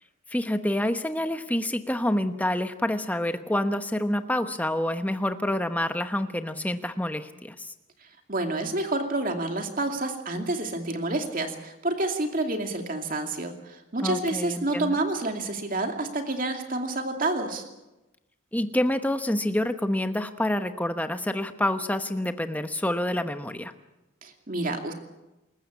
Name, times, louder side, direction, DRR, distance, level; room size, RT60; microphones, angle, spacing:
voice 1, 0.3-7.7 14.0-15.0 18.5-23.7, left 1 dB, 10° left, 8 dB, 1.0 m, -27 dB
voice 2, 8.3-17.6 24.2-24.9, right 2 dB, 40° right, 4 dB, 2.5 m, -29 dB
26.5 x 14.5 x 8.6 m, 1.0 s
head